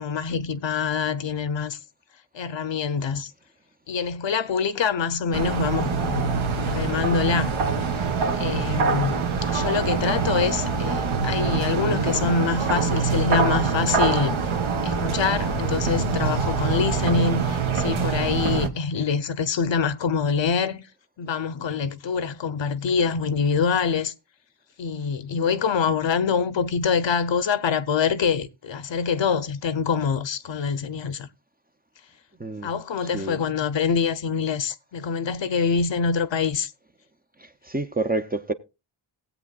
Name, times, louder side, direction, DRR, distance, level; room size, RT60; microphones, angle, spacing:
voice 1, 0.0-1.8 2.3-3.3 3.9-7.5 8.4-14.5 14.8-20.8 21.2-24.1 24.8-31.3 32.6-36.7, left 6 dB, 65° left, 0.8 m, -25 dB
sound 1, 5.3-18.7, right 5 dB, 70° right, 1.2 m, -24 dB
voice 2, 37.6-38.5, right 2 dB, 20° right, 0.5 m, -27 dB
18.5 x 8.2 x 2.3 m
wide cardioid pair, 130°, 49 cm